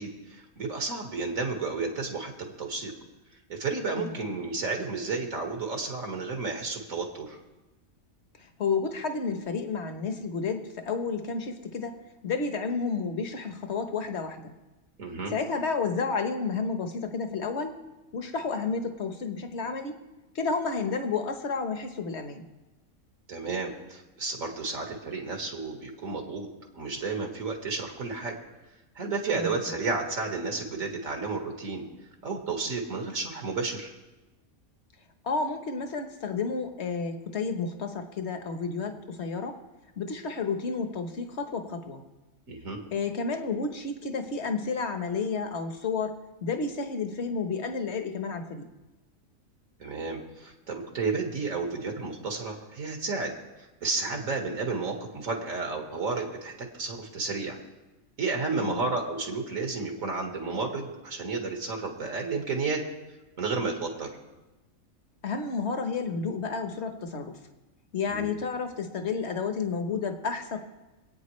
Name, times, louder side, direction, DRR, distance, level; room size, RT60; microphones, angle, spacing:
voice 1, 0.0-2.9 3.5-7.4 15.0-15.3 23.3-26.5 26.8-28.4 29.0-31.8 32.2-33.9 42.5-42.8 49.8-53.4 53.8-57.6 58.2-62.9 63.4-64.1 68.1-68.3, right 4 dB, 70° right, 2 dB, 2.0 m, -32 dB
voice 2, 8.4-12.0 12.2-14.5 15.3-17.8 18.1-20.0 20.3-22.4 29.3-29.6 35.2-39.6 40.0-42.0 42.9-48.6 58.6-58.9 65.2-67.4 67.9-70.6, left 4 dB, 55° left, 6 dB, 1.3 m, -31 dB
25.5 x 8.9 x 3.2 m, 1.1 s
omnidirectional pair, 1.4 m